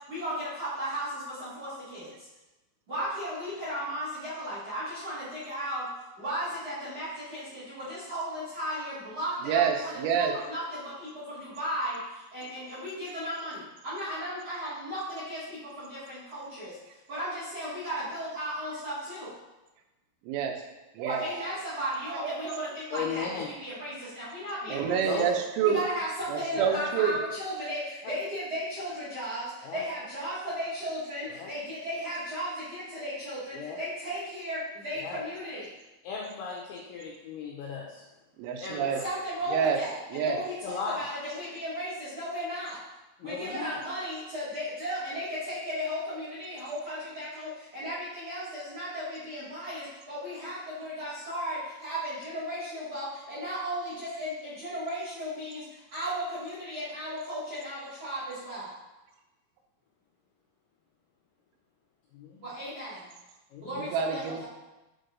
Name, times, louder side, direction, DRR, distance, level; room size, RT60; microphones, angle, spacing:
voice 1, 0.1-2.3 2.9-5.9 6.2-16.8 17.1-19.3 21.0-25.2 25.7-35.7 39.0-42.8 43.2-58.7 62.4-63.1 63.6-64.4, equal, 50° right, -10 dB, 2.0 m, -35 dB
voice 2, 9.4-10.3 20.2-20.6 20.9-21.5 22.1-22.7 24.7-25.8 26.3-27.2 38.4-39.0 39.5-39.8 40.1-40.4 63.7-64.4, right 7 dB, 90° right, 4 dB, 3.4 m, -28 dB
voice 3, 22.9-23.5 25.0-25.3 26.6-26.8 28.0-28.1 29.6-29.8 31.3-31.5 33.5-33.8 35.0-35.2 36.0-38.0 38.6-39.1 40.6-41.0 43.2-43.8 62.1-62.4 63.5-63.8, left 6 dB, 85° left, -3 dB, 2.7 m, -36 dB
7.9 x 4.6 x 2.6 m, 1.0 s
omnidirectional pair, 5.9 m